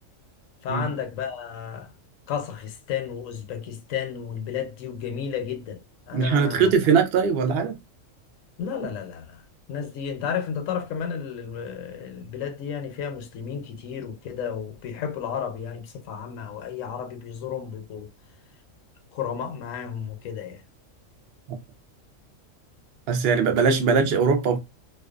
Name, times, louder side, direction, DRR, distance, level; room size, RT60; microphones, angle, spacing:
voice 1, 0.6-1.9 2.3-5.8 6.1-6.7 8.6-18.1 19.1-20.6, left 7 dB, 75° left, 1.0 m, -32 dB
voice 2, 6.1-7.8 23.1-24.6, right 5 dB, 65° right, 0.6 m, -21 dB
2.5 x 2.2 x 2.3 m
omnidirectional pair, 1.4 m